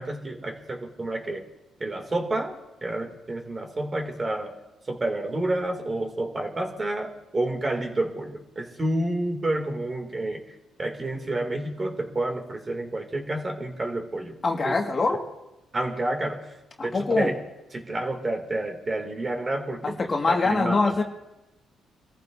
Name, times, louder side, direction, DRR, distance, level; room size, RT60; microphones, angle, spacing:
voice 1, 0.0-1.4 1.8-4.6 4.9-10.4 10.8-14.3 14.6-14.8 15.7-16.5 16.8-17.4 17.7-20.0 20.3-21.0, right 1 dB, 30° right, 3 dB, 2.5 m, -29 dB
voice 2, 14.4-15.2 16.8-17.3 19.8-21.0, left 3 dB, 35° left, 1 dB, 1.8 m, -24 dB
25.5 x 14.5 x 2.7 m, 1.0 s
cardioid pair, 90°, 0 cm